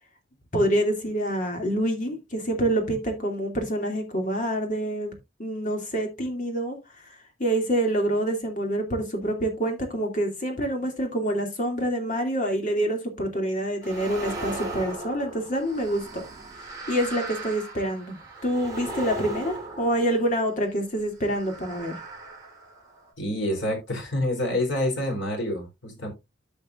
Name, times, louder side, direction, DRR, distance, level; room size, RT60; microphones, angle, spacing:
voice 1, 0.5-5.1 5.4-6.8 7.4-16.2 16.9-21.9, right 1 dB, 40° left, 2.6 m, -26 dB
sound 1, 13.8-20.6 21.2-23.1, right 2 dB, 20° right, 2.8 m, -38 dB
voice 2, 23.2-26.1, left 1 dB, 85° left, 4.0 m, -27 dB
14.0 x 5.4 x 2.5 m
head